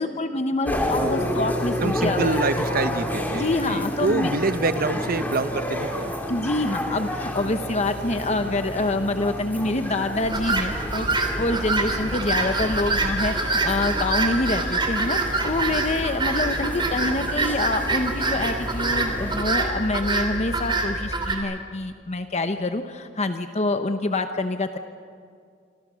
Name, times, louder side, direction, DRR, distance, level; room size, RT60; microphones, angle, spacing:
voice 1, 0.0-2.4 3.3-4.3 6.3-11.1 11.4-24.8, left 2 dB, 35° left, 7 dB, 0.9 m, -26 dB
sound 1, 0.6-19.4, equal, 10° left, 3.0 m, -31 dB
voice 2, 1.8-6.1, right 3 dB, 50° right, 12 dB, 0.9 m, -26 dB
sound 2, 10.2-21.4, right 2 dB, 25° right, 3.1 m, -25 dB
27.5 x 26.5 x 6.3 m, 2.3 s
head